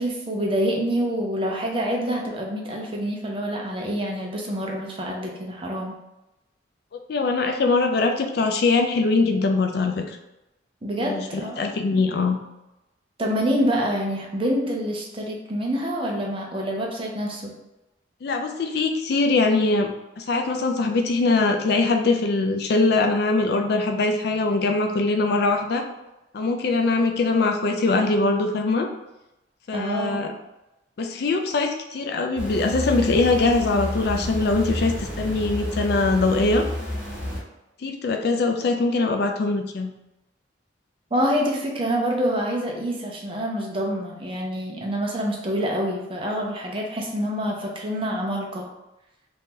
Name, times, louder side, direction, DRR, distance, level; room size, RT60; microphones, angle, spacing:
voice 1, 0.0-6.0 10.8-12.0 13.2-17.5 29.7-30.3 41.1-48.7, equal, 30° right, -1 dB, 0.6 m, -26 dB
voice 2, 7.1-10.2 11.0-12.4 18.2-25.8 26.3-28.9 29.7-30.3 31.0-36.6 37.8-39.9, left 3 dB, 55° left, 4 dB, 0.4 m, -22 dB
sound 1, 32.4-37.4, left 1 dB, 5° right, 1.0 m, -30 dB
2.8 x 2.6 x 3.6 m, 0.96 s
head